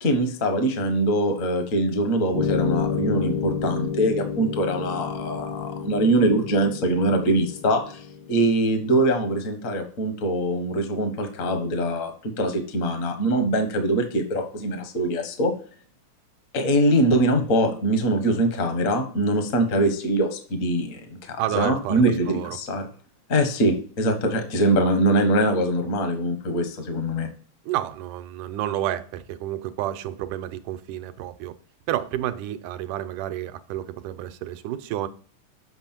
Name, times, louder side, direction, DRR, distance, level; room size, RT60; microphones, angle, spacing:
voice 1, 0.0-15.5 16.5-22.9 23.3-27.3, right 1 dB, 55° left, 0.8 m, -23 dB
sound 1, 2.3-8.9, left 6 dB, 75° left, 2.3 m, -30 dB
voice 2, 21.4-22.6 27.6-31.5 31.9-35.1, right 13 dB, 90° right, 2.2 m, -30 dB
7.8 x 5.7 x 4.4 m
omnidirectional pair, 3.5 m